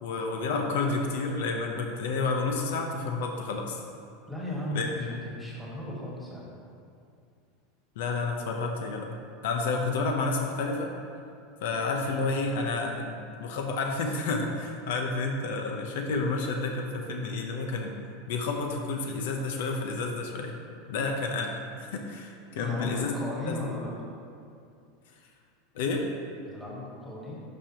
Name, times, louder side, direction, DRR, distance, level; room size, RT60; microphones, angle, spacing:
voice 1, 0.0-3.8 4.7-5.2 8.0-9.1 9.4-10.9 11.6-18.0 18.3-20.6 20.9-23.1 23.5-23.6 25.7-26.1, left 3 dB, 75° left, 2 dB, 0.8 m, -30 dB
voice 2, 4.3-6.5 22.6-23.9 26.4-27.4, left 1 dB, 5° left, -6 dB, 1.6 m, -36 dB
11.5 x 5.0 x 2.9 m, 2.5 s
supercardioid pair, 155°, 0 cm